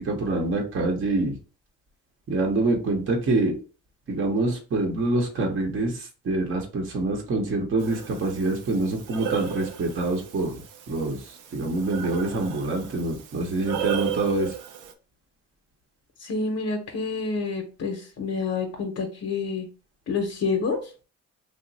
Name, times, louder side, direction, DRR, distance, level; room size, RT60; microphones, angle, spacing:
voice 1, 0.0-1.4 2.3-3.6 4.1-10.5 10.9-14.5, right 2 dB, 40° right, 1 dB, 0.8 m, -26 dB
Breathing, 7.8-14.9, right 9 dB, 85° right, 0.5 m, -35 dB
voice 2, 16.2-19.7 20.1-20.8, left 4 dB, 55° left, 2 dB, 0.7 m, -28 dB
2.9 x 2.0 x 4.0 m, 0.35 s
cardioid pair, 90°, 30 cm